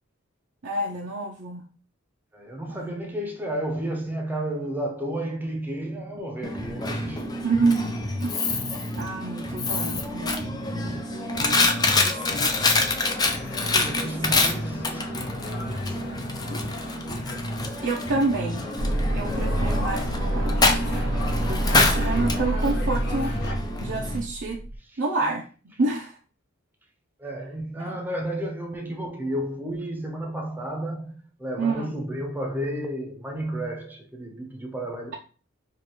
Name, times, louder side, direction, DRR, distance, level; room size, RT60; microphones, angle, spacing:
voice 1, 0.6-1.7 2.7-3.0 7.4-7.9 8.2-8.5 9.0-12.8 13.7-14.1 17.2-17.4 17.8-18.7 19.1-23.3 23.8-24.6 25.0-25.5 25.8-26.2 27.8-27.9 31.6-31.9, right 3 dB, 65° right, 0.6 m, -29 dB
voice 2, 2.3-7.4 13.6-16.3 24.9-25.0 27.2-35.2, right 1 dB, 10° right, 0.8 m, -32 dB
Coin (dropping), 6.4-24.2, left 2 dB, 20° left, 0.5 m, -27 dB
sound 1, 12.4-23.5, left 2 dB, 55° left, 0.9 m, -39 dB
sound 2, 18.8-24.8, right 1 dB, 80° right, 1.0 m, -27 dB
4.7 x 2.5 x 3.0 m
head